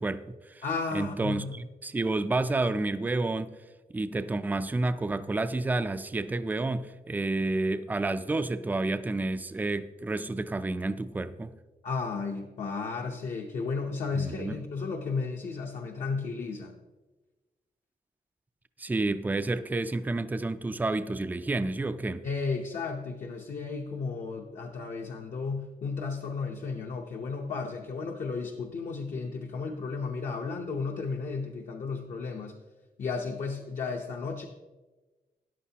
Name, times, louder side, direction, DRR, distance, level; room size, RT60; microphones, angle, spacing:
voice 1, 0.0-0.6 0.9-3.5 3.9-11.5 14.1-14.6 18.8-22.2, right 2 dB, 10° right, 0.3 m, -30 dB
voice 2, 0.6-1.6 11.8-16.7 22.2-32.5 33.0-34.5, left 4 dB, 55° left, 0.8 m, -33 dB
13.5 x 10.0 x 2.8 m
wide cardioid pair, 165°, 15 cm